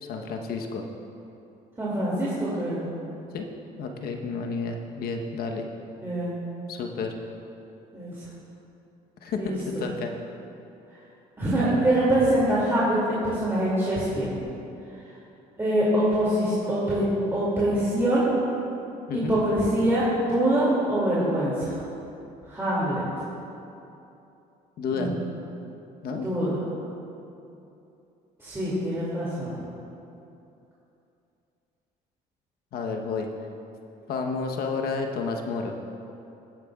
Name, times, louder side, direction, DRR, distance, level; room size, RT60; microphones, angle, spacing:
voice 1, 0.0-0.8 3.3-3.5 3.8-5.7 6.7-7.1 9.2-10.1 19.1-19.4 24.8-25.2 26.0-26.3 32.7-33.3 34.1-35.8, left 4 dB, 65° left, 3 dB, 1.0 m, -31 dB
voice 2, 1.8-2.9 6.0-6.4 7.9-8.1 9.3-9.6 11.4-14.3 15.6-17.0 17.3-18.3 19.3-21.8 22.5-23.1 24.9-25.2 26.1-26.6 28.4-29.5, right 1 dB, 15° right, -9 dB, 2.4 m, -24 dB
17.5 x 9.0 x 2.4 m, 2.8 s
cardioid pair, 110°, 17 cm